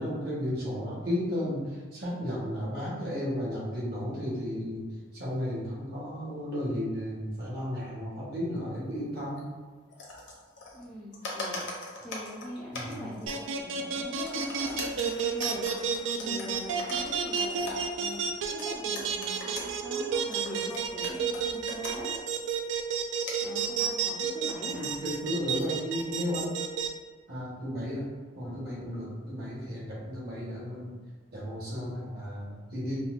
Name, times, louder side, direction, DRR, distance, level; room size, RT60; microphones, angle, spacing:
voice 1, 0.0-4.8 5.1-9.4 12.7-13.1 24.7-26.5 27.3-28.0 28.3-30.9 31.3-33.0, equal, 55° right, -6 dB, 1.2 m, -34 dB
sound 1, 9.4-9.5 9.8-10.8 11.1-13.6 14.0-22.4 23.3-23.5 24.8-25.8, left 2 dB, 60° left, 0.7 m, -42 dB
voice 2, 10.7-11.6 12.0-22.1 23.4-24.9, left 1 dB, 5° left, -7 dB, 0.4 m, -42 dB
sound 2, 13.3-26.9, right 7 dB, 75° right, 0.3 m, -30 dB
4.0 x 2.1 x 2.4 m, 1.4 s
head